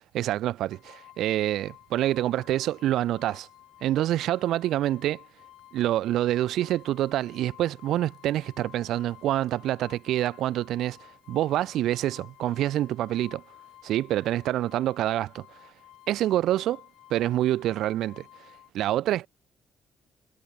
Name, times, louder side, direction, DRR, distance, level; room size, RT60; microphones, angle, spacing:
voice 1, 0.1-3.5 3.8-5.2 5.7-11.0 11.3-13.4 13.8-15.5 16.1-16.8 17.1-18.2 18.7-19.3, right 13 dB, 80° right, 0.4 m, -26 dB
sound 1, 0.7-18.7, left 14 dB, 90° left, 3.7 m, -53 dB
cardioid pair, 160°, 0 cm